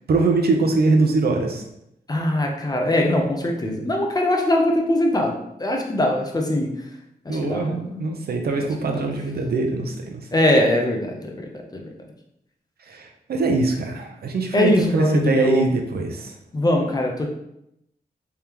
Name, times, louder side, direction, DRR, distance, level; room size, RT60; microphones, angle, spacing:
voice 1, 0.1-1.6 7.3-10.3 12.9-16.3, right 3 dB, 75° right, 3 dB, 0.7 m, -22 dB
voice 2, 2.1-6.7 7.2-8.0 8.6-9.0 10.3-11.9 14.5-15.7 16.5-17.3, left 1 dB, 25° left, 1 dB, 0.7 m, -22 dB
3.5 x 3.4 x 2.9 m, 0.79 s
wide cardioid pair, 95°, 17 cm